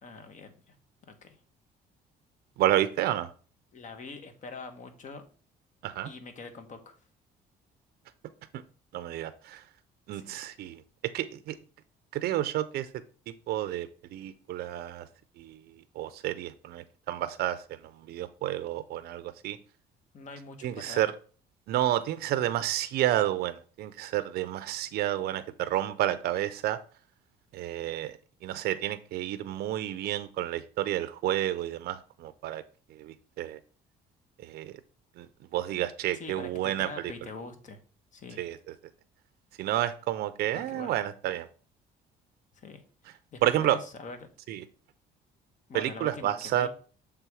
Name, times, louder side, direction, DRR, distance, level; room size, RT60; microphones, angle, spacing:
voice 1, 0.0-0.7 1.1-1.4 3.7-5.2 6.0-7.0 10.1-10.4 20.1-21.0 36.1-37.8 38.1-38.4 40.5-41.0 42.5-44.3 45.7-46.7, left 4 dB, 45° left, 8 dB, 1.2 m, -44 dB
voice 2, 2.6-3.3 5.8-6.1 8.5-8.6 8.9-9.6 10.1-10.8 11.1-11.6 12.1-12.9 13.5-15.1 15.4-15.6 16.0-19.6 20.6-21.1 21.7-26.8 27.5-28.2 28.4-32.6 33.0-33.6 34.4-34.7 35.2-35.3 35.5-36.9 38.4-38.6 39.6-41.5 43.4-43.8 44.5-44.6 45.7-46.7, right 13 dB, 70° right, 12 dB, 0.5 m, -30 dB
6.8 x 3.5 x 4.7 m, 0.40 s
cardioid pair, 110°, 17 cm